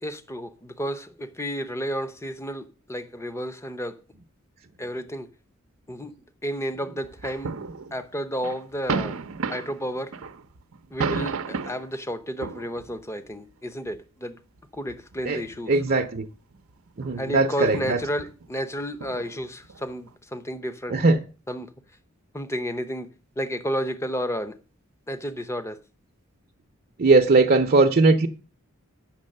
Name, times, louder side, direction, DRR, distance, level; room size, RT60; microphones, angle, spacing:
voice 1, 0.0-4.0 4.8-5.3 5.9-6.1 6.4-7.6 7.9-9.2 9.5-10.1 10.9-14.4 14.7-15.8 17.2-21.0 21.5-21.7 22.3-23.1 23.4-24.6 25.1-25.8, equal, 15° left, 0.7 m, -31 dB
sound 1, 7.0-8.1 8.4-11.9 12.4-13.0 13.9-14.0 14.8-16.0 16.4-16.7 17.0-17.1 17.7-20.1, right 5 dB, 90° right, 0.6 m, -33 dB
voice 2, 15.7-16.3 17.0-18.0 20.9-21.2 27.0-28.3, right 3 dB, 45° right, 0.7 m, -19 dB
8.7 x 6.3 x 6.4 m
head